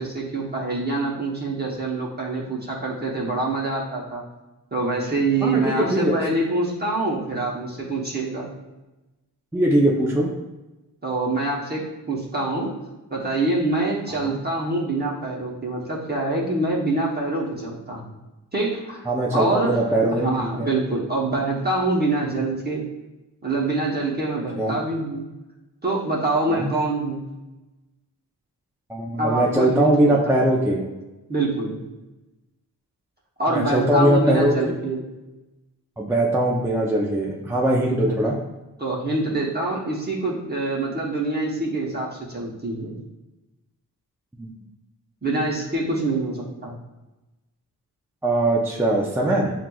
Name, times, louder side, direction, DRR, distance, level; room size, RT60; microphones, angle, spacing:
voice 1, 0.0-4.2 4.7-8.5 11.0-12.7 13.1-18.1 18.5-19.7 20.1-22.9 23.4-25.3 25.8-27.2 29.2-30.4 31.3-31.8 33.4-35.0 37.9-38.2 38.8-42.9 45.2-46.8, right 2 dB, 25° right, -4 dB, 0.9 m, -25 dB
voice 2, 5.4-6.2 9.5-10.3 14.2-14.4 19.1-20.7 24.6-24.8 26.5-26.7 28.9-30.8 33.5-34.7 36.0-38.3 44.4-44.5 48.2-49.5, right 1 dB, 5° right, -2 dB, 0.5 m, -21 dB
7.2 x 2.5 x 2.3 m, 1.1 s
wide cardioid pair, 90°, 38 cm